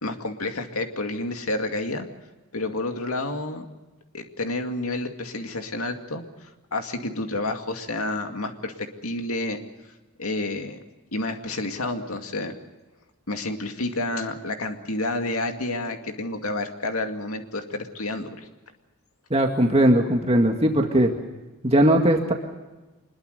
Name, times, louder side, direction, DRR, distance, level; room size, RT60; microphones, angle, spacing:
voice 1, 0.0-2.1 2.5-3.7 4.1-9.6 10.2-10.8 11.1-12.6 13.3-18.5, left 2 dB, 75° left, 5 dB, 2.3 m, -30 dB
voice 2, 19.3-21.1 21.6-22.3, right 1 dB, 30° right, 2 dB, 2.0 m, -19 dB
25.0 x 21.5 x 6.7 m, 1.1 s
head